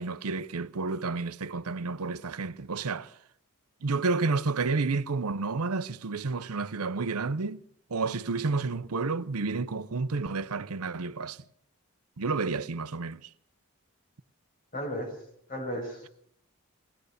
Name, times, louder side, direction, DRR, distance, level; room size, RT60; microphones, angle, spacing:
voice 1, 0.0-3.1 3.8-7.6 7.9-11.4 12.2-13.3, right 4 dB, 85° right, 0.8 m, -30 dB
voice 2, 14.7-15.1 15.5-16.1, equal, 40° left, 7.3 m, -34 dB
22.5 x 18.5 x 6.7 m
head